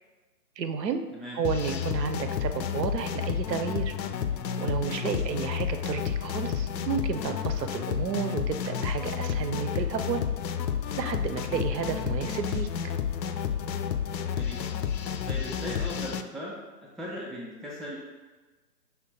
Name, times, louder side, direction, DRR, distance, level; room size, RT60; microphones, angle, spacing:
voice 1, 0.6-1.0 1.3-3.9 4.6-10.2 11.0-12.7, right 6 dB, 80° right, 8 dB, 0.6 m, -31 dB
sound 1, 1.4-16.2, left 8 dB, 85° left, 0.5 m, -31 dB
voice 2, 15.2-16.5 17.0-18.0, equal, ahead, -4 dB, 0.4 m, -38 dB
5.7 x 2.2 x 3.9 m, 1.2 s
hypercardioid pair, 175°, 49 cm